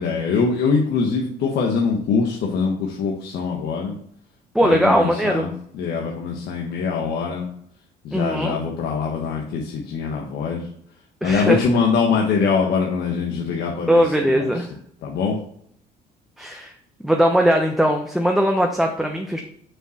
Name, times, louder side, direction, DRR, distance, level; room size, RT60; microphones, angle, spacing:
voice 1, 0.0-3.9 4.6-7.5 8.0-10.7 11.2-14.6 15.0-15.4, left 5 dB, 75° left, 0 dB, 1.3 m, -23 dB
voice 2, 4.5-5.5 8.1-8.6 11.2-11.6 13.9-14.7 16.4-16.7 17.0-19.4, equal, ahead, 2 dB, 0.9 m, -19 dB
6.4 x 5.0 x 6.4 m, 0.67 s
cardioid pair, 110°, 17 cm